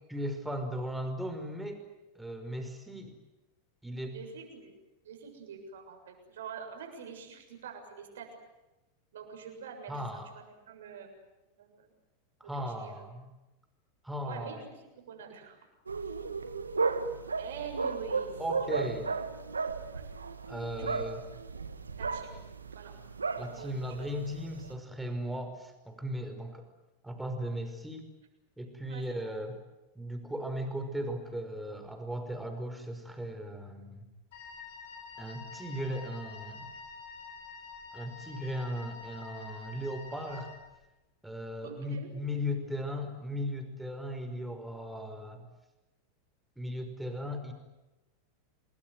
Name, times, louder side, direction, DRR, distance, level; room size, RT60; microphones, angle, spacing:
voice 1, 0.1-1.8 2.2-3.2 3.8-4.2 9.9-10.3 12.4-13.3 14.0-14.6 18.4-19.1 20.5-21.2 23.4-26.7 27.0-28.1 28.6-29.6 30.0-34.0 35.2-36.7 37.9-40.5 41.2-45.5 46.6-47.5, equal, 5° right, 5 dB, 5.5 m, -37 dB
voice 2, 4.1-4.7 5.0-8.3 9.1-11.1 11.6-11.9 12.5-12.9 14.2-15.6 16.0-16.1 17.4-18.7 19.9-20.1 20.7-20.9 22.0-23.0 23.4-24.2 28.9-29.2 41.6-42.1, right 6 dB, 70° right, 4 dB, 7.1 m, -46 dB
sound 1, 15.9-24.7, right 4 dB, 90° right, 1.8 m, -35 dB
Wind instrument woodwind instrument, 34.3-40.7, left 4 dB, 60° left, 7.6 m, -47 dB
28.5 x 20.5 x 9.6 m, 1.0 s
hypercardioid pair, 95°, 0 cm